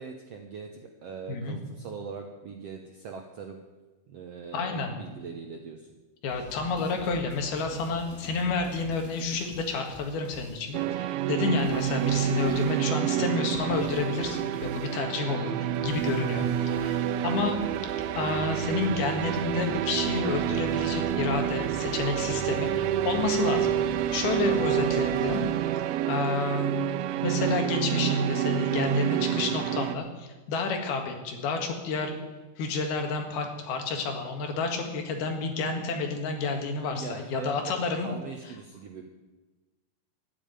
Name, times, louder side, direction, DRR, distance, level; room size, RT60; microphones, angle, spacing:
voice 1, 0.0-3.6 4.1-5.9 16.1-16.4 36.9-37.7 38.0-39.0, right 5 dB, 70° right, 3 dB, 1.5 m, -41 dB
voice 2, 4.5-5.0 6.2-17.6 18.2-25.4 26.1-26.7 27.2-32.2 32.6-38.1, left 4 dB, 90° left, 4 dB, 3.8 m, -30 dB
sound 1, 6.3-10.8 11.5-12.9 13.5-15.1 15.6-25.5, left 1 dB, 20° right, 3.5 m, -47 dB
sound 2, 10.7-30.0, right 11 dB, 90° right, 2.6 m, -28 dB
12.5 x 10.5 x 9.2 m, 1.2 s
omnidirectional pair, 4.3 m